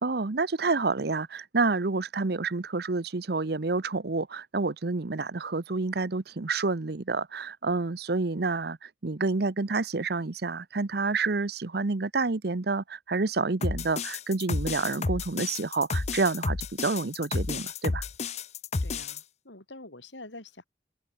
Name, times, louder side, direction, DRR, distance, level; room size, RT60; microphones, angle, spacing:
voice 1, 0.0-18.0, right 3 dB, 60° right, 0.8 m, -29 dB
sound 1, 13.6-19.2, left 3 dB, 35° left, 0.6 m, -31 dB
voice 2, 18.8-20.6, left 2 dB, 85° left, 6.6 m, -46 dB
open air
head